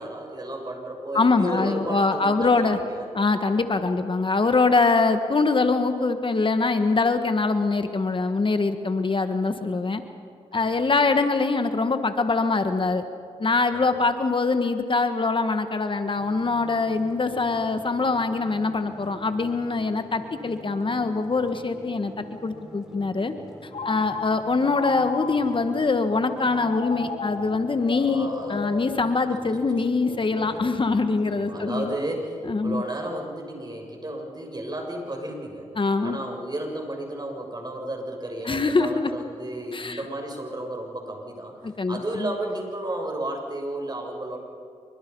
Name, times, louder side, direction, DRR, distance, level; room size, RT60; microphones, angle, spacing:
voice 1, 0.0-3.1 10.5-10.9 13.7-14.0 23.8-24.3 28.0-28.6 29.9-30.7 31.5-35.7 36.0-41.5 41.9-44.4, right 1 dB, 35° right, 1 dB, 6.8 m, -33 dB
voice 2, 1.1-2.8 3.1-10.0 10.5-13.0 13.4-23.3 23.8-31.9 32.5-32.8 35.8-36.2 38.4-39.1 39.7-40.0 41.6-42.3, left 3 dB, 45° left, 8 dB, 1.6 m, -23 dB
sound 1, 16.2-32.3, right 1 dB, 5° right, 4.6 m, -47 dB
Telephone, 23.7-25.7 26.6-29.6, left 4 dB, 65° left, 2.0 m, -34 dB
27.0 x 24.0 x 5.5 m, 2.5 s
supercardioid pair, 45°, 12 cm